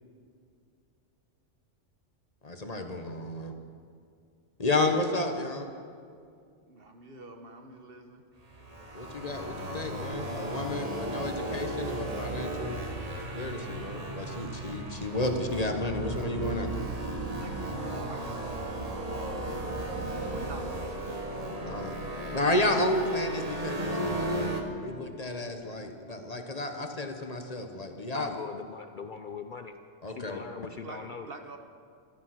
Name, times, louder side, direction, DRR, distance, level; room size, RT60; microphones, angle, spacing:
voice 1, 2.4-3.5 4.6-5.7 8.9-12.8 13.3-16.7 21.6-22.0 22.3-24.5 24.8-28.4 30.0-30.4, left 2 dB, 35° left, 5 dB, 1.1 m, -31 dB
voice 2, 6.7-8.3 17.4-19.6 20.3-21.0 22.7-22.9 30.8-31.6, right 3 dB, 55° right, 5 dB, 1.3 m, -46 dB
sound 1, 8.4-24.6, right 1 dB, 30° right, 1.4 m, -35 dB
voice 3, 28.1-29.7 30.1-31.3, left 5 dB, 50° left, 7 dB, 0.7 m, -40 dB
14.0 x 13.0 x 6.0 m, 2.3 s
omnidirectional pair, 1.2 m